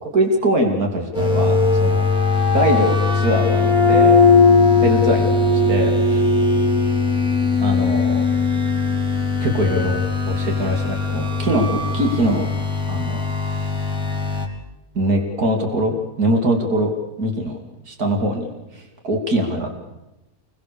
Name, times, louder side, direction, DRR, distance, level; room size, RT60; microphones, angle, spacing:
voice 1, 0.0-2.1 2.5-4.2 4.8-6.2 7.6-8.3 9.4-12.5 12.9-13.2 14.9-16.9 17.2-17.6 17.9-18.5 18.7-19.8, right 1 dB, 75° right, 2 dB, 3.3 m, -22 dB
sound 1, 1.1-14.5, left 4 dB, 5° right, 3.5 m, -19 dB
28.0 x 22.0 x 6.9 m, 0.96 s
omnidirectional pair, 1.6 m